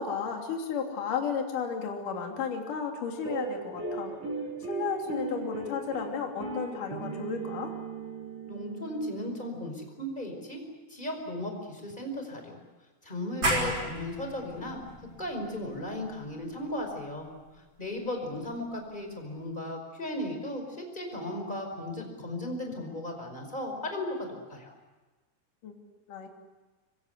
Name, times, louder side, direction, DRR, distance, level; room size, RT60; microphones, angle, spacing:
voice 1, 0.0-4.2 4.6-7.7 18.3-18.4 25.6-25.7 26.1-26.3, left 6 dB, 45° left, 2 dB, 4.0 m, -33 dB
sound 1, 3.2-9.8, right 3 dB, 65° right, 7.6 m, -38 dB
voice 2, 8.5-10.6 10.9-12.6 13.0-14.8 15.2-17.3 17.8-24.7, left 1 dB, 10° left, 3 dB, 4.7 m, -36 dB
sound 2, 13.4-18.8, right 1 dB, 25° right, 5.6 m, -35 dB
25.5 x 24.0 x 8.1 m, 1.2 s
omnidirectional pair, 5.6 m